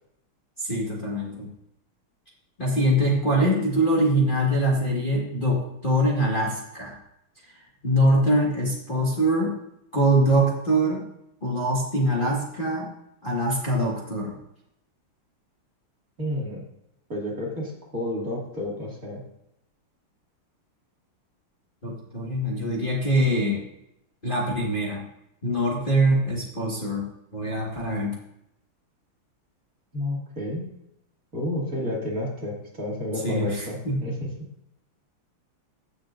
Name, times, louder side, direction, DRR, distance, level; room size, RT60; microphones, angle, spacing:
voice 1, 0.6-1.5 2.6-7.0 7.8-9.5 9.9-11.0 11.4-12.9 13.2-14.3 21.8-23.6 24.2-25.0 25.4-27.0 27.3-28.1 33.2-34.0, right 1 dB, 25° left, -5 dB, 1.7 m, -23 dB
voice 2, 16.2-16.6 17.1-19.2 29.9-30.6 31.3-34.3, left 1 dB, 40° right, -3 dB, 2.7 m, -30 dB
15.5 x 6.7 x 2.5 m, 0.80 s
omnidirectional pair, 2.3 m